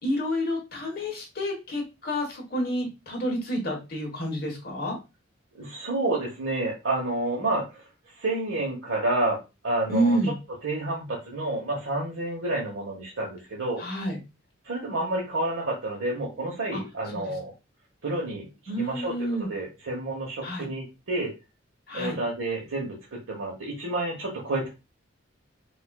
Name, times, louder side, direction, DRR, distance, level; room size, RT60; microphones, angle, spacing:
voice 1, 0.0-5.0 9.9-10.3 13.8-14.2 16.7-16.8 17.1-17.2 18.7-19.5 20.4-20.7 21.9-22.2, equal, 45° left, 0 dB, 1.3 m, -29 dB
voice 2, 5.5-7.8 8.2-9.4 9.6-10.3 10.6-13.8 14.6-17.5 18.0-18.5 18.8-21.3 21.9-24.7, right 2 dB, 75° right, -3 dB, 1.0 m, -29 dB
4.7 x 2.5 x 2.3 m, 0.26 s
head